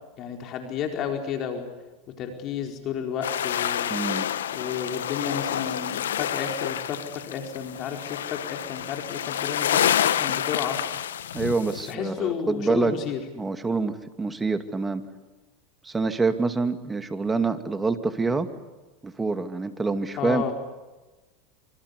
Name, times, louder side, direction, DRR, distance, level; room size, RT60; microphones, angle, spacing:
voice 1, 0.2-1.7 2.2-3.9 4.5-7.0 7.2-10.8 11.9-13.2 20.2-20.5, left 8 dB, 45° left, 4 dB, 4.4 m, -31 dB
sound 1, 3.2-11.9, left 10 dB, 85° left, 1.2 m, -28 dB
voice 2, 3.9-4.3 11.3-12.9 13.3-15.0 15.8-18.5 19.0-20.5, right 3 dB, 15° right, 9 dB, 2.4 m, -26 dB
26.5 x 26.0 x 8.3 m, 1.1 s
hypercardioid pair, 100°, 0 cm